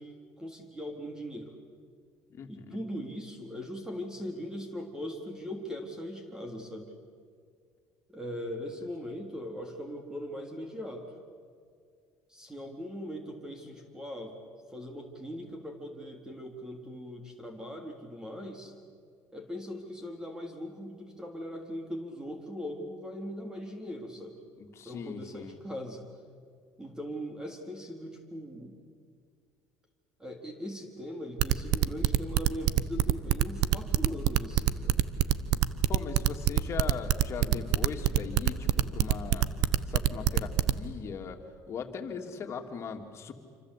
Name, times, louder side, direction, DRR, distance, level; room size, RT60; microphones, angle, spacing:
voice 1, 0.0-1.6 2.5-6.9 8.1-11.1 12.3-14.3 14.7-18.7 19.3-24.4 24.8-26.1 26.8-28.8 30.2-34.9, equal, 10° right, 3 dB, 3.7 m, -40 dB
voice 2, 2.3-2.8 9.0-9.1 24.6-25.6 35.9-39.5 39.9-41.4 41.7-43.3, left 6 dB, 45° left, 4 dB, 2.9 m, -39 dB
sound 1, 31.4-40.7, right 13 dB, 70° right, 1.1 m, -24 dB
27.5 x 25.5 x 8.5 m, 2.1 s
supercardioid pair, 105°, 7 cm